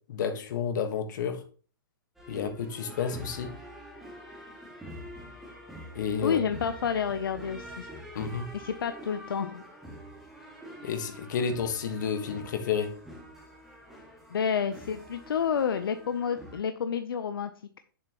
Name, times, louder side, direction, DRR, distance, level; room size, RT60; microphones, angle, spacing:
voice 1, 0.1-1.4 2.3-3.6 5.9-6.4 8.1-8.5 10.8-13.0, left 6 dB, 55° left, 1.5 m, -31 dB
sound 1, 2.2-16.6, equal, ahead, 1.9 m, -46 dB
voice 2, 6.2-7.9 8.5-9.6 14.3-17.5, left 7 dB, 80° left, 0.7 m, -29 dB
8.7 x 7.3 x 3.0 m
hypercardioid pair, 150°, 12 cm